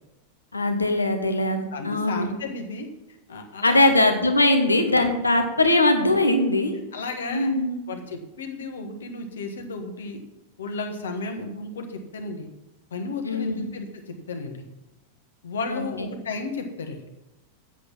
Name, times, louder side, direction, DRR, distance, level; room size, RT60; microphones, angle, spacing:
voice 1, 0.5-2.3 3.6-6.7 7.3-7.8 13.2-13.7 15.7-16.1, left 2 dB, 80° left, 6 dB, 1.1 m, -21 dB
voice 2, 1.7-2.9 3.3-3.9 6.9-7.5 7.9-10.2 10.6-12.5 12.9-14.6 15.4-17.0, left 3 dB, 65° left, 5 dB, 1.5 m, -33 dB
8.1 x 8.0 x 6.1 m, 0.97 s
figure-of-eight pair, 90°, 0 cm